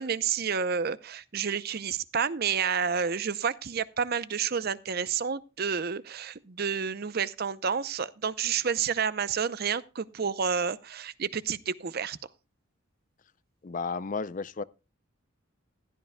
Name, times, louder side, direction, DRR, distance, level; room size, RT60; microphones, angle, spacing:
voice 1, 0.0-12.2, right 6 dB, 50° right, 0.6 m, -30 dB
voice 2, 13.6-14.6, left 4 dB, 40° left, 0.4 m, -33 dB
15.5 x 12.0 x 2.2 m
head